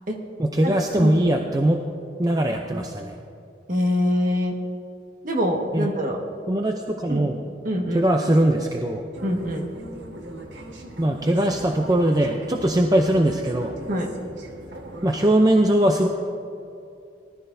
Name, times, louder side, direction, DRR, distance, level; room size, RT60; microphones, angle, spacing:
voice 1, 0.4-1.8 2.2-3.1 5.7-5.9 6.5-7.4 7.9-9.0 11.0-13.7 15.0-16.1, right 1 dB, 20° right, 3 dB, 0.5 m, -21 dB
voice 2, 1.0-1.4 2.5-2.8 3.7-4.5 5.2-6.2 7.1-7.3 7.6-8.0 9.2-9.7 13.9-14.1, equal, 45° right, 1 dB, 1.5 m, -25 dB
sound 1, 9.1-15.2, right 1 dB, 75° right, 1.4 m, -40 dB
19.5 x 12.5 x 2.7 m, 2.7 s
head